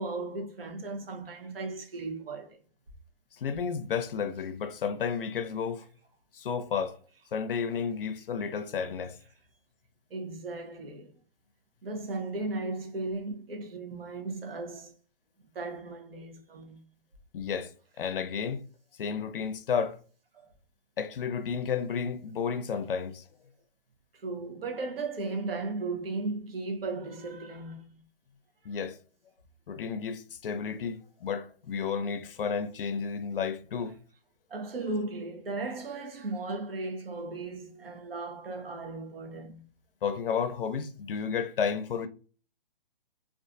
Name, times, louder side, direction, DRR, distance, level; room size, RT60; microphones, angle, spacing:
voice 1, 0.0-2.6 10.1-11.1 11.8-14.9 15.5-16.8 20.3-20.5 24.1-28.0 34.5-39.6, right 3 dB, 80° right, 0.8 m, -36 dB
voice 2, 3.4-5.9 6.3-7.0 7.3-9.2 17.3-17.7 18.0-18.6 19.0-20.0 21.0-23.2 28.7-29.0 29.7-34.0 40.0-42.1, left 6 dB, 70° left, 0.5 m, -32 dB
2.5 x 2.4 x 2.4 m
hypercardioid pair, 175°, 29 cm